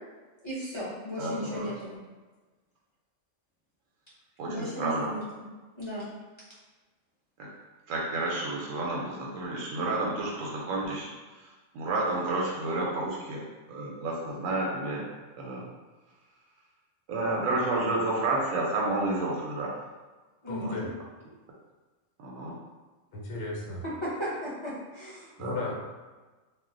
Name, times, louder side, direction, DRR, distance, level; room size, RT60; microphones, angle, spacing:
voice 1, 0.4-2.0 4.4-5.5 5.8-6.1 20.4-20.9 22.4-22.5 23.8-25.3, equal, 30° left, -10 dB, 0.6 m, -35 dB
voice 2, 1.2-1.7 4.4-5.1 7.9-11.1 11.7-13.4 13.7-15.0 15.4-15.6 17.1-19.7 20.6-20.8 22.2-22.5 25.4-25.7, right 2 dB, 90° right, -3 dB, 1.0 m, -30 dB
voice 3, 20.5-20.9 23.1-23.8 25.4-25.7, left 2 dB, 75° left, -3 dB, 1.0 m, -35 dB
2.4 x 2.0 x 3.7 m, 1.3 s
omnidirectional pair, 1.3 m